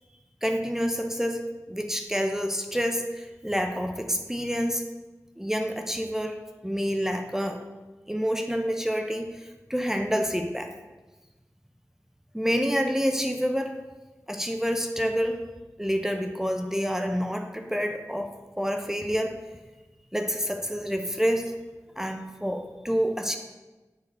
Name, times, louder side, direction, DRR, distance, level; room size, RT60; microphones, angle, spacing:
voice 1, 0.4-4.8 5.4-6.4 6.6-7.6 8.1-10.7 12.3-13.8 14.3-15.4 15.8-18.3 18.6-19.4 20.1-21.5 22.0-23.4, equal, 5° right, 4 dB, 0.6 m, -28 dB
9.0 x 3.7 x 4.3 m, 1.2 s
wide cardioid pair, 55°, 6 cm